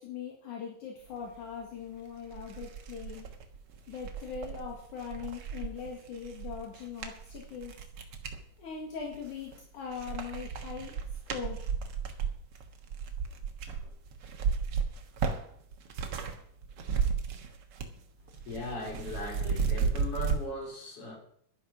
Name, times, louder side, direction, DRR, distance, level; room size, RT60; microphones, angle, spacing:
voice 1, 0.0-3.3 3.9-7.7 8.6-10.9 11.3-11.6, left 6 dB, 70° left, -1 dB, 3.4 m, -41 dB
sound 1, 1.7-1.8 2.3-8.4 9.0-9.6 9.9-16.4 16.6-18.0 18.3-20.4, right 6 dB, 55° right, 1.9 m, -34 dB
voice 2, 18.5-21.2, left 1 dB, 45° left, 1 dB, 4.7 m, -38 dB
11.5 x 10.0 x 5.9 m, 0.64 s
omnidirectional pair, 3.6 m